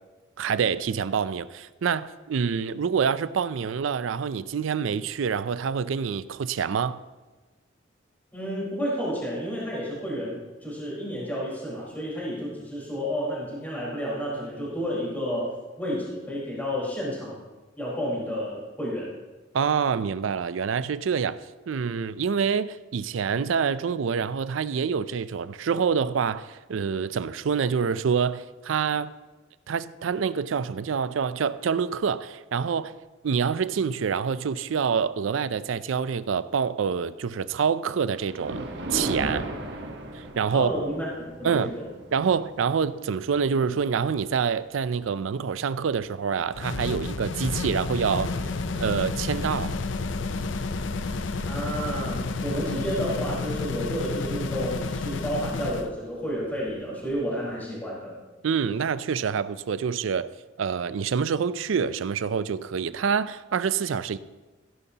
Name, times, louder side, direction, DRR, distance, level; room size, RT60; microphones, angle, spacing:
voice 1, 0.4-7.0 19.5-21.4 21.7-29.1 29.7-32.9 33.2-39.4 40.1-40.7 41.4-41.8 42.1-48.3 48.8-49.8 58.4-60.3 60.6-64.2, right 6 dB, 85° right, 0.4 m, -26 dB
voice 2, 8.3-17.4 17.8-19.1 40.5-41.1 41.4-41.9 51.4-58.1, equal, 10° left, 4.3 m, -31 dB
Thunder, 38.1-46.6 47.2-47.4 48.1-48.2 48.6-48.7 50.8-51.0 51.4-51.5 51.6-57.6, right 1 dB, 65° right, 1.3 m, -40 dB
sound 1, 46.5-55.9, left 3 dB, 70° left, 0.6 m, -30 dB
16.0 x 11.0 x 2.9 m
head